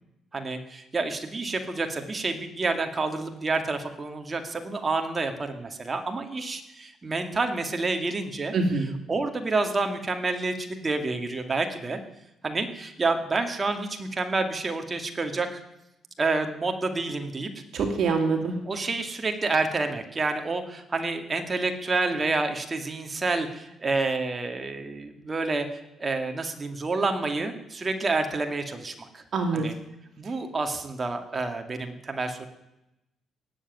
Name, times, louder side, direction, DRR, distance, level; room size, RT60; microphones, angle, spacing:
voice 1, 0.3-8.5 9.1-12.0 12.4-15.6 16.2-17.5 18.7-29.2 29.5-29.7 30.2-32.5, right 3 dB, 30° right, 5 dB, 2.3 m, -29 dB
voice 2, 8.5-8.9 17.7-18.5 29.3-29.7, right 4 dB, 65° right, 4 dB, 2.6 m, -25 dB
18.5 x 7.8 x 9.5 m, 0.90 s
cardioid pair, 90°, 0 cm